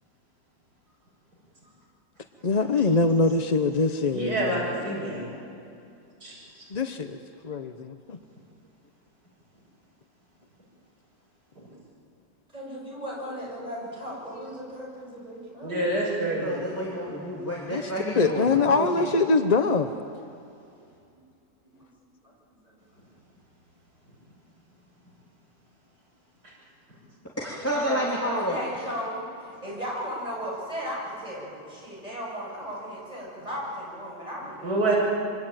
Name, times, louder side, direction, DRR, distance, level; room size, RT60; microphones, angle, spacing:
voice 1, 2.4-4.7 6.7-7.2 7.4-8.2 17.7-19.9, left 3 dB, 40° left, 8 dB, 0.6 m, -24 dB
voice 2, 4.1-5.2 6.2-6.4 15.6-16.5 34.6-35.0, right 2 dB, 70° right, -5 dB, 7.5 m, -26 dB
voice 3, 12.5-16.1 20.6-20.7 21.1-21.2 21.6-22.3 22.6-22.7 27.9-35.0, equal, 20° right, -4 dB, 8.1 m, -36 dB
voice 4, 16.4-19.1 27.4-28.6, equal, 10° left, -4 dB, 3.3 m, -29 dB
26.0 x 25.0 x 9.1 m, 2.5 s
omnidirectional pair, 1.8 m